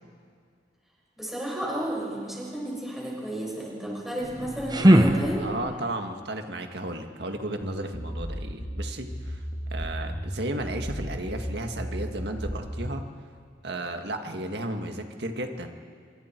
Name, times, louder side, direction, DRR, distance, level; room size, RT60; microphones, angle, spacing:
voice 1, 1.2-5.5, right 1 dB, ahead, -5 dB, 6.4 m, -32 dB
sound 1, 4.2-5.9, right 1 dB, 25° right, 0.9 m, -21 dB
voice 2, 5.4-9.4 9.7-13.0 13.6-15.7, right 1 dB, 65° right, 4 dB, 1.9 m, -34 dB
sound 2, 7.6-13.0, equal, 45° left, 2.3 m, -34 dB
26.5 x 24.0 x 4.6 m, 2.1 s
head